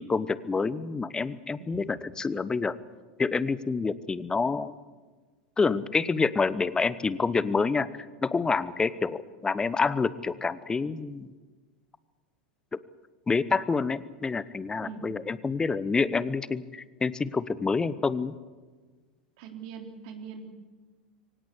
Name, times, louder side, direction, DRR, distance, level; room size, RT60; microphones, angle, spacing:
voice 1, 0.0-2.8 3.2-4.7 5.6-7.9 8.2-11.3 13.3-18.3, left 4 dB, 15° left, 17 dB, 1.0 m, -27 dB
voice 2, 1.6-2.0 14.8-15.1 19.4-20.5, right 6 dB, 55° right, 3 dB, 3.6 m, -42 dB
24.0 x 18.0 x 8.4 m, 1.4 s
figure-of-eight pair, 85°, 5 cm